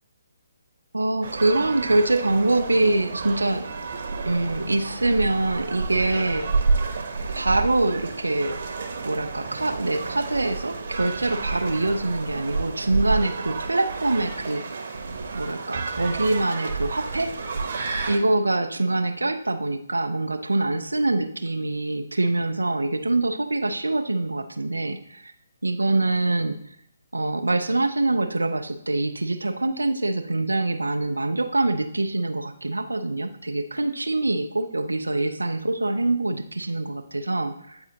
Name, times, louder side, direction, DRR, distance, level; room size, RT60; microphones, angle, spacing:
voice 1, 0.9-3.7 4.3-6.5 7.3-8.6 9.0-14.6 15.3-17.3 18.1-25.3 25.6-26.6 27.1-37.8, right 2 dB, 80° right, 6 dB, 0.4 m, -24 dB
sound 1, 1.2-18.2, right 4 dB, 50° right, 0.9 m, -30 dB
8.6 x 4.0 x 2.8 m, 0.70 s
figure-of-eight pair, 140°, 0 cm